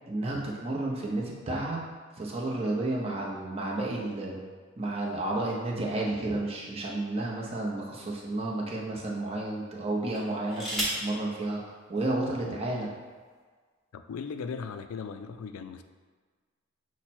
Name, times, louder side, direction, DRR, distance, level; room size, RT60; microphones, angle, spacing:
voice 1, 0.1-1.9 2.2-4.4 4.8-11.6 11.9-12.9, right 2 dB, 30° right, -3 dB, 0.7 m, -31 dB
sound 1, 6.3-7.6 8.3-8.5 10.1-11.1 12.3-12.4 12.7-13.1, right 1 dB, ahead, 1.0 m, -35 dB
voice 2, 13.9-15.8, left 5 dB, 85° left, 8 dB, 0.3 m, -38 dB
5.7 x 2.1 x 4.2 m, 1.5 s
head